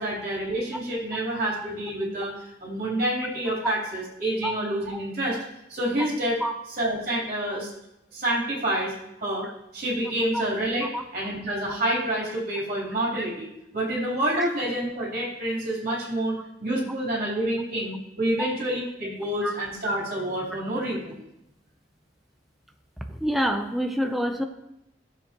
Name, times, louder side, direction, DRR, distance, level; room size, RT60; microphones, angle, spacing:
voice 1, 0.0-5.4 5.7-6.4 6.8-7.7 8.1-8.9 9.2-10.9 11.1-21.2, right 1 dB, 50° right, -5 dB, 3.7 m, -28 dB
voice 2, 23.1-24.4, equal, ahead, 4 dB, 0.7 m, -27 dB
15.0 x 7.5 x 3.0 m, 0.85 s
head